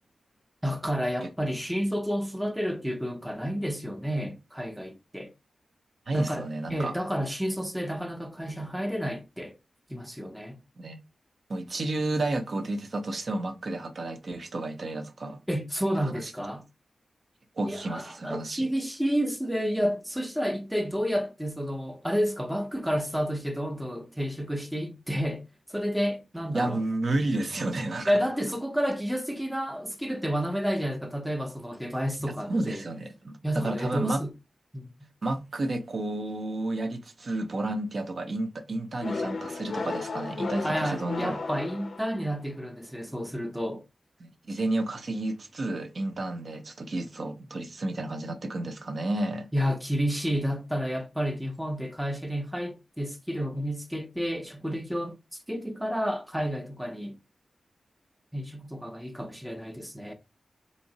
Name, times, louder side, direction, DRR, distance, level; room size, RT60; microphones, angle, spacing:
voice 1, 0.6-5.3 6.1-9.5 9.9-10.6 15.5-16.6 17.6-26.8 28.1-32.8 33.4-34.3 34.7-34.9 40.6-43.8 49.5-57.2 58.3-60.1, equal, 5° right, 0.5 m, -30 dB
voice 2, 6.1-6.9 10.8-11.0 11.5-15.4 16.0-16.3 17.6-18.7 26.5-28.2 32.5-33.4 33.6-34.2 35.2-41.4 44.2-49.5, right 2 dB, 50° right, 0.5 m, -31 dB
sound 1, 39.0-42.5, left 4 dB, 55° left, 0.4 m, -35 dB
3.7 x 2.7 x 2.8 m
wide cardioid pair, 110°, 0 cm